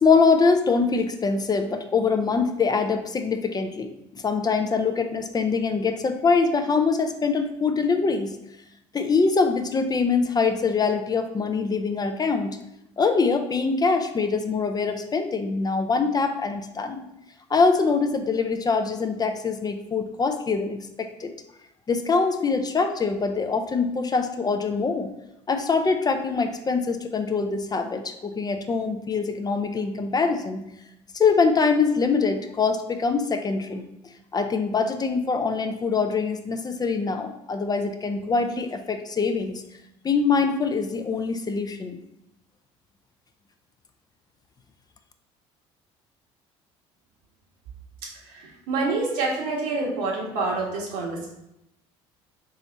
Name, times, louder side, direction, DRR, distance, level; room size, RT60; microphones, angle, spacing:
voice 1, 0.0-8.4 8.9-12.6 13.0-17.0 17.5-21.3 21.9-25.1 25.5-30.6 31.1-33.8 34.3-39.6 40.0-42.0, left 4 dB, 25° left, 7 dB, 0.5 m, -24 dB
voice 2, 48.3-51.3, right 3 dB, 75° right, -3 dB, 1.4 m, -27 dB
3.6 x 3.0 x 4.1 m, 0.83 s
hypercardioid pair, 75°, 14 cm